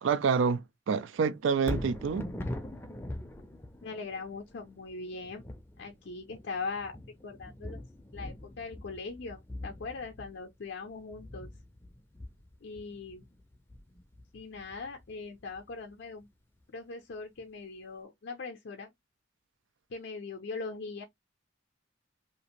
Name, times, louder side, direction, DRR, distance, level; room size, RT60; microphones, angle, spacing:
voice 1, 0.0-2.3, right 5 dB, 80° right, 0.4 m, -28 dB
Thunder, 1.6-15.8 16.2-16.3, left 1 dB, 10° left, 0.5 m, -43 dB
voice 2, 3.8-5.4 5.8-7.0 7.2-7.8 8.1-11.5 12.6-13.2 14.3-16.3 16.7-18.9 19.9-21.0, left 4 dB, 60° left, 0.5 m, -40 dB
2.9 x 2.5 x 2.9 m
head